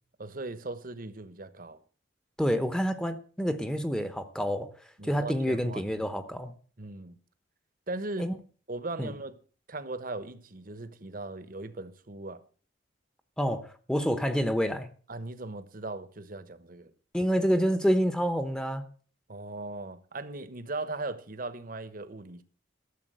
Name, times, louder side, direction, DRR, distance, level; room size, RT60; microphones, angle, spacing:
voice 1, 0.2-1.8 5.0-5.9 6.8-7.2 7.9-8.3 8.7-9.3 9.7-12.4 15.1-16.9 19.3-22.4, right 2 dB, 50° right, 1.2 m, -38 dB
voice 2, 2.4-4.7 5.0-6.5 8.2-8.3 9.0-9.1 13.4-14.9 17.1-18.8, equal, 5° left, 1.0 m, -28 dB
13.0 x 7.6 x 7.6 m
head